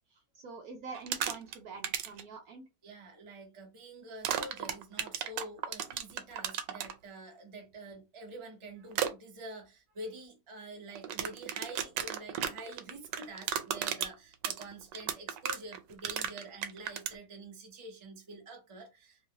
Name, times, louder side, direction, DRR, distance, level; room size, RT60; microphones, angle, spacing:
voice 1, 0.3-2.6, right 4 dB, 70° right, 0.9 m, -45 dB
sound 1, 0.9-1.6 1.8-2.2 4.2-6.9 8.9-9.1 11.0-17.2, right 9 dB, 85° right, 1.2 m, -34 dB
voice 2, 2.8-19.3, right 2 dB, 25° right, 0.6 m, -47 dB
3.1 x 2.7 x 2.8 m
omnidirectional pair, 1.9 m